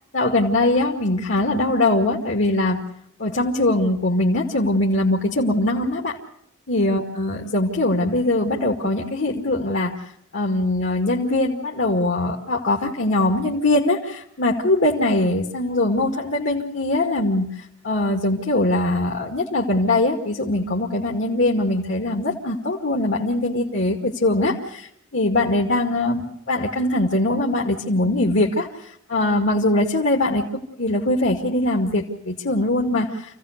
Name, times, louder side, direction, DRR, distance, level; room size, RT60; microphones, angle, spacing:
voice 1, 0.1-2.8 3.2-6.2 6.7-9.9 10.3-17.5 17.8-24.9 25.1-28.7 29.1-33.1, left 2 dB, 65° left, -1 dB, 2.2 m, -21 dB
28.0 x 16.5 x 6.6 m, 0.77 s
head